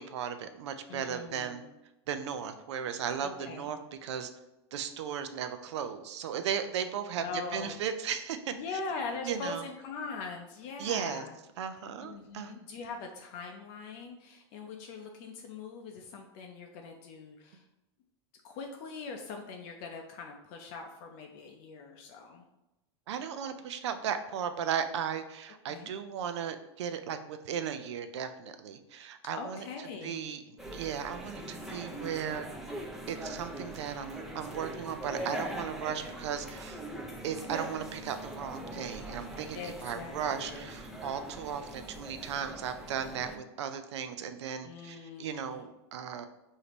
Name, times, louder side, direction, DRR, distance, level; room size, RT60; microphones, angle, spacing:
voice 1, 0.0-1.6 2.1-4.3 4.7-8.5 9.2-9.6 10.8-11.2 11.6-12.5 23.1-29.6 30.0-32.5 33.1-36.8 37.2-46.3, right 8 dB, 75° right, 9 dB, 0.5 m, -36 dB
voice 2, 0.9-1.6 3.2-3.7 7.2-7.8 8.5-11.3 12.0-17.6 18.4-22.4 25.7-25.9 29.4-30.3 39.5-40.8 44.6-45.6, left 4 dB, 50° left, 3 dB, 0.5 m, -42 dB
sound 1, 30.6-43.4, right 1 dB, ahead, 0.5 m, -42 dB
5.0 x 2.7 x 2.9 m, 0.95 s
hypercardioid pair, 130°, 15 cm